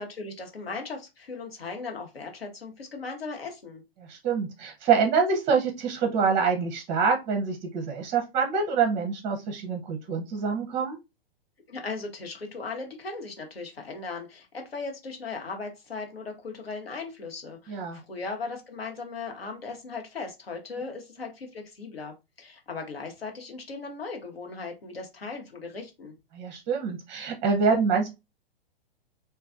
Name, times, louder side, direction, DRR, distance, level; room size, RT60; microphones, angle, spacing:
voice 1, 0.0-3.8 11.7-26.1, left 4 dB, 75° left, 3 dB, 1.1 m, -38 dB
voice 2, 4.0-11.0 17.7-18.0 26.3-28.1, right 5 dB, 20° right, 2 dB, 0.6 m, -26 dB
3.2 x 2.3 x 2.4 m, 0.24 s
figure-of-eight pair, 110°, 30 cm